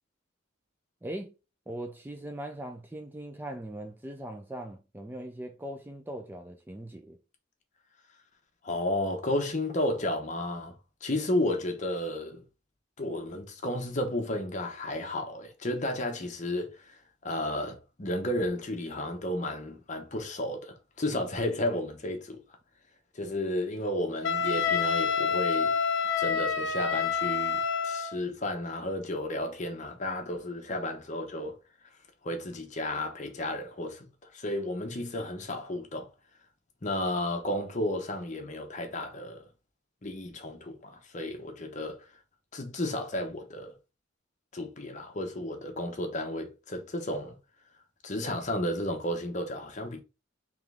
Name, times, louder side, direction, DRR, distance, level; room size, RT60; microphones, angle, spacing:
voice 1, 1.0-1.3 1.7-7.2, right 1 dB, 10° right, 0.4 m, -40 dB
voice 2, 8.6-10.8 11.0-12.4 13.0-22.4 23.1-25.8 26.2-31.6 32.2-36.1 36.8-39.5 40.0-42.1 42.5-43.7 44.5-47.4 48.0-50.0, left 1 dB, 40° left, 0.9 m, -33 dB
Wind instrument woodwind instrument, 24.2-28.1, left 6 dB, 80° left, 0.7 m, -27 dB
3.7 x 3.0 x 3.4 m
head